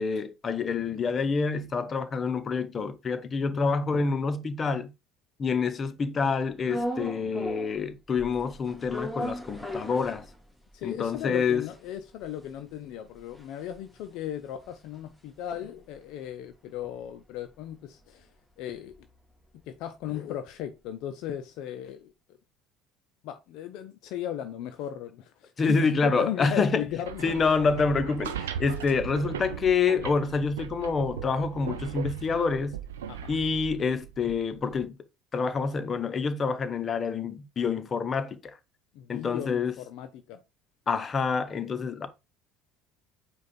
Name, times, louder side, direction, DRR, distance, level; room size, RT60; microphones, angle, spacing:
voice 1, 0.0-4.9 5.4-10.2 10.8-11.6 25.6-26.9 27.2-32.8 33.3-34.9 35.3-38.6 39.1-39.7 40.9-42.1, left 5 dB, 35° left, 0.8 m, -27 dB
sound 1, 6.7-7.9 8.2-10.8 11.1-11.2 11.4-15.9 16.3-20.3, equal, 5° left, 1.7 m, -39 dB
voice 2, 10.7-18.3 18.6-19.1 19.7-22.1 23.2-27.2 33.1-33.3 38.9-40.4, left 11 dB, 65° left, 0.5 m, -36 dB
sound 2, 26.8-34.8, right 9 dB, 85° right, 0.4 m, -38 dB
4.9 x 2.4 x 4.3 m
hypercardioid pair, 65°, 0 cm